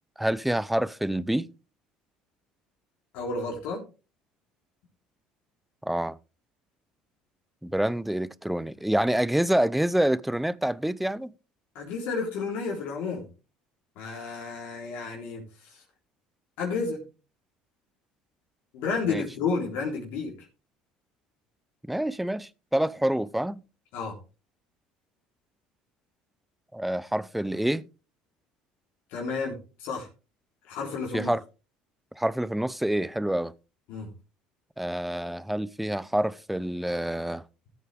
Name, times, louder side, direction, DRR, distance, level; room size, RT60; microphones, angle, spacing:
voice 1, 0.2-1.5 5.8-6.2 7.6-11.3 19.0-19.2 21.9-23.6 26.7-27.8 31.1-31.4 32.2-33.5 34.8-37.4, right 1 dB, 5° right, 0.6 m, -27 dB
voice 2, 3.1-3.8 11.8-13.3 14.0-15.4 15.7-15.8 16.6-17.0 18.7-20.3 23.9-24.1 29.1-30.1 30.6-31.3 33.9-34.1, left 4 dB, 75° left, 3.6 m, -31 dB
14.0 x 8.3 x 3.5 m
supercardioid pair, 90°, 3 cm